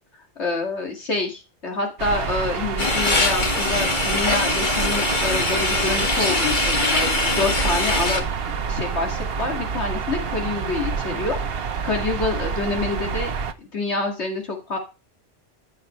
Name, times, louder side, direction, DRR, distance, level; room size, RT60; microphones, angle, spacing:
voice 1, 0.4-8.2 8.7-13.3 13.6-14.8, left 3 dB, 75° left, 2 dB, 2.5 m, -27 dB
sound 1, 2.0-13.5, right 6 dB, 60° right, 1.1 m, -28 dB
sound 2, 2.8-8.2, left 2 dB, 45° left, 2.0 m, -22 dB
14.5 x 6.5 x 3.2 m, 0.29 s
omnidirectional pair, 1.2 m